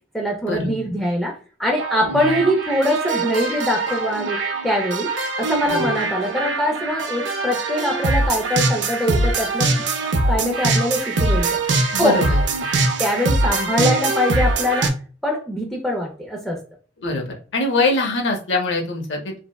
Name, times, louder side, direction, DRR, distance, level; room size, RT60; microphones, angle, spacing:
voice 1, 0.1-1.3 1.6-5.1 5.4-9.7 10.3-11.6 12.0-12.2 13.0-14.9 15.2-16.6, equal, ahead, -1 dB, 0.4 m, -23 dB
sound 1, 1.8-14.9, right 2 dB, 75° right, 0.4 m, -22 dB
voice 2, 11.9-12.4 17.0-17.2 17.5-19.3, left 2 dB, 85° left, 2 dB, 0.7 m, -23 dB
3.3 x 2.0 x 2.2 m, 0.39 s
head